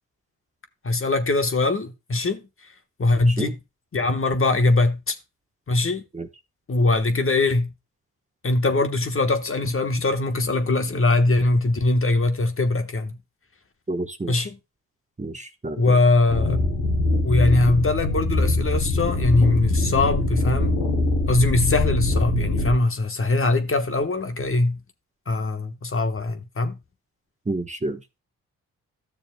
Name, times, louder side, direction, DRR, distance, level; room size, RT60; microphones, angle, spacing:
voice 1, 0.8-2.4 3.0-3.6 3.9-5.2 5.7-6.0 6.7-7.7 8.4-13.2 14.3-14.6 15.8-16.7 17.2-20.8 21.3-24.8 25.3-26.8, left 2 dB, 35° left, 1.2 m, -21 dB
voice 2, 13.9-14.5 15.2-16.0 27.5-28.0, right 2 dB, 20° right, 1.0 m, -29 dB
sound 1, 16.3-22.7, left 2 dB, 80° left, 2.5 m, -23 dB
13.0 x 6.8 x 2.2 m
supercardioid pair, 45°, 36 cm